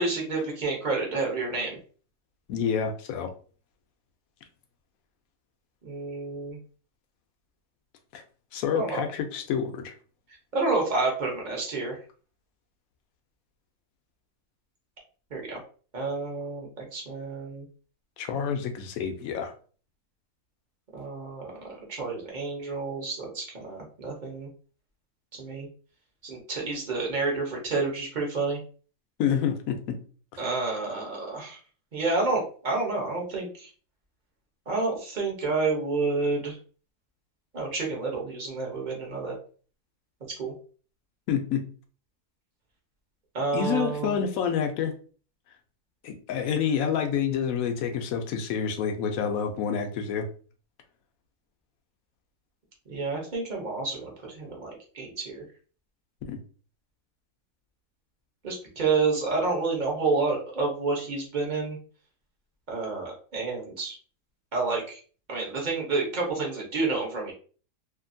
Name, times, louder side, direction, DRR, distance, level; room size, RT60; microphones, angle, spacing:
voice 1, 0.0-1.8 5.8-6.6 8.7-9.0 10.5-12.0 15.3-15.6 15.9-17.6 20.9-24.5 25.3-25.7 26.2-28.6 30.4-31.6 31.9-33.7 34.7-36.6 37.5-39.4 40.4-40.5 43.3-44.2 52.9-55.4 58.4-61.8 62.7-64.0 64.5-65.0 65.3-67.3, right 3 dB, 40° right, -1 dB, 0.7 m, -29 dB
voice 2, 2.5-3.3 8.1-8.2 8.5-9.9 18.2-19.5 29.2-29.8 41.3-41.6 43.5-44.9 46.0-50.3 56.3-56.4, left 7 dB, 70° left, 5 dB, 0.9 m, -28 dB
2.8 x 2.5 x 2.6 m, 0.40 s
omnidirectional pair, 1.8 m